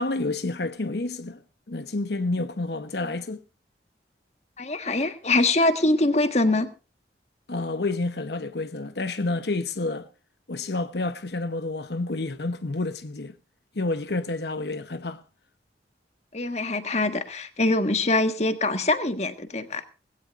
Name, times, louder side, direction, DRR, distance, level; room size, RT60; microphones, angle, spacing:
voice 1, 0.0-1.4 1.7-3.4 7.5-10.1 10.5-13.3 13.7-15.2, left 2 dB, 70° left, 0.9 m, -29 dB
voice 2, 4.6-6.7 16.3-19.8, left 2 dB, 40° left, 1.5 m, -23 dB
19.5 x 16.5 x 2.5 m
head